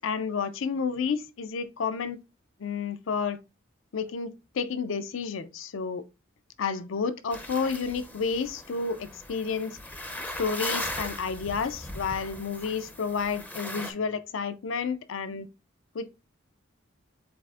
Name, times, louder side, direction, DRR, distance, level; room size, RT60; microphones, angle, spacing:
voice 1, 0.0-2.2 2.6-3.4 3.9-6.0 6.6-9.8 10.4-15.5 15.9-16.1, left 5 dB, 70° left, 0.5 m, -31 dB
sound 1, 7.3-13.9, left 1 dB, 10° left, 0.5 m, -38 dB
7.5 x 2.5 x 2.4 m
head